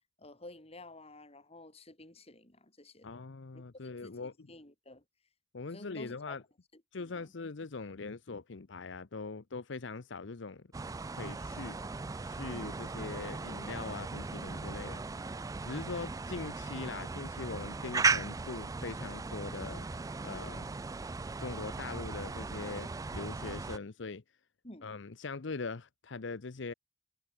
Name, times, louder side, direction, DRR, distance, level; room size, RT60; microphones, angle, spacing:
voice 1, 0.2-3.2 3.5-3.6 4.0-5.0 5.7-6.4 7.0-7.3 24.6-24.9, left 2 dB, 30° left, 3.9 m, -51 dB
voice 2, 3.0-4.5 5.5-6.4 6.9-10.7 11.1-11.8 12.2-15.0 15.6-20.7 21.4-24.2 24.8-26.7, left 4 dB, 65° left, 0.8 m, -41 dB
sound 1, 10.7-23.8, right 4 dB, 15° right, 0.3 m, -37 dB
head